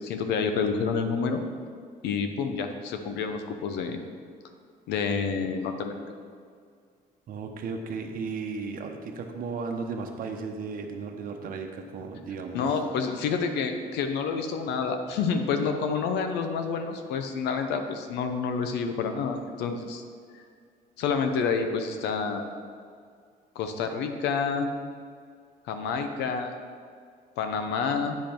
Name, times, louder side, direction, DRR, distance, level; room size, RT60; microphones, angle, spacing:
voice 1, 0.0-1.4 2.0-4.0 4.9-6.0 12.5-20.0 21.0-22.5 23.5-24.7 25.7-26.5 27.4-28.2, left 5 dB, 85° left, 6 dB, 0.8 m, -28 dB
voice 2, 7.3-12.7, right 4 dB, 55° right, 4 dB, 1.0 m, -35 dB
9.1 x 5.3 x 4.5 m, 2.2 s
cardioid pair, 110°, 17 cm